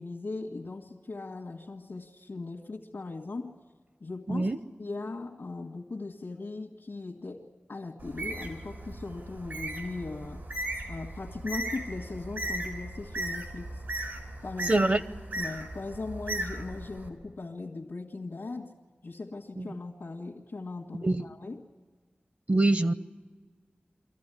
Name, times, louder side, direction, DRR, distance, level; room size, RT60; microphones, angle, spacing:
voice 1, 0.0-3.5 4.0-4.5 4.8-10.5 10.9-13.8 14.4-14.9 15.3-18.7 19.0-21.6, left 3 dB, 90° left, -3 dB, 1.7 m, -39 dB
Bird, 8.0-17.1, right 1 dB, 90° right, 3.3 m, -37 dB
voice 2, 14.7-15.0 19.6-19.7 21.0-21.2 22.5-22.9, right 2 dB, 50° right, 12 dB, 0.8 m, -24 dB
24.0 x 15.0 x 10.0 m, 1.4 s
wide cardioid pair, 80°, 4 cm